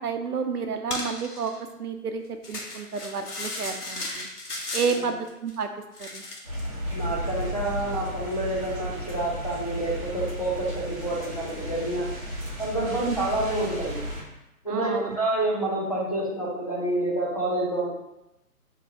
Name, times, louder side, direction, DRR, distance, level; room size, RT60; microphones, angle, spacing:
voice 1, 0.0-1.5 1.8-4.3 4.7-5.7 6.0-6.2 13.0-13.2 14.7-15.2, right 5 dB, 75° right, 6 dB, 0.7 m, -30 dB
sound 1, 0.9-1.6 2.4-5.0 5.3-5.6 5.9-6.7, left 2 dB, 75° left, 1.2 m, -35 dB
sound 2, 6.4-14.2, equal, 20° right, 1.1 m, -34 dB
voice 2, 6.9-12.1 12.6-14.0 14.6-17.9, right 2 dB, 25° left, -6 dB, 0.5 m, -28 dB
6.1 x 3.0 x 2.8 m, 0.90 s
figure-of-eight pair, 150°, 46 cm